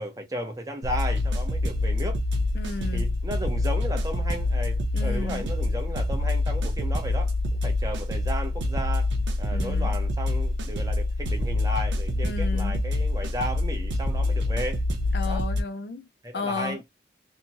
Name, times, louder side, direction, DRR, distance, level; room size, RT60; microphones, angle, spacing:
voice 1, 0.0-2.2 2.9-9.1 9.4-14.8 15.3-15.4 16.2-16.8, equal, 20° right, 0.7 m, -34 dB
sound 1, 0.8-15.6, left 2 dB, 85° right, 0.7 m, -26 dB
voice 2, 2.5-3.1 4.9-5.5 9.5-10.0 12.2-12.8 15.1-16.0 16.3-16.9, left 3 dB, 60° left, 0.4 m, -33 dB
2.9 x 2.2 x 2.6 m
head